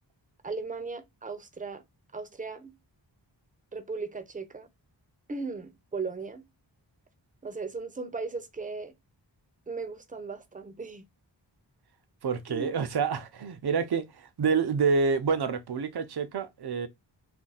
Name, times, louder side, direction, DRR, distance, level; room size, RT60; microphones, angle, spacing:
voice 1, 0.4-1.8 2.1-2.7 3.7-4.7 5.3-6.4 7.4-8.9 9.7-11.0 12.5-12.7, right 4 dB, 20° right, 0.5 m, -37 dB
voice 2, 12.2-16.9, right 5 dB, 60° right, 0.6 m, -28 dB
2.5 x 2.2 x 3.9 m
wide cardioid pair, 60°, 45 cm